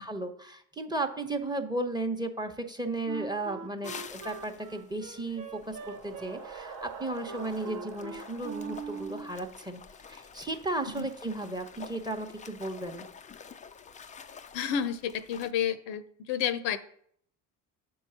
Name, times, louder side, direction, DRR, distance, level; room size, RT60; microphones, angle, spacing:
voice 1, 0.0-9.8 10.1-13.1, right 2 dB, 10° right, 8 dB, 0.8 m, -35 dB
Wind instrument woodwind instrument, 3.0-9.3, right 6 dB, 45° right, 0.7 m, -42 dB
sound 1, 3.8-15.5, left 6 dB, 20° left, 0.3 m, -49 dB
sound 2, 5.2-10.1, right 5 dB, 70° right, 1.2 m, -47 dB
voice 2, 14.5-16.9, left 9 dB, 65° left, 13 dB, 0.7 m, -30 dB
7.1 x 4.7 x 5.6 m, 0.66 s
hypercardioid pair, 55°, 49 cm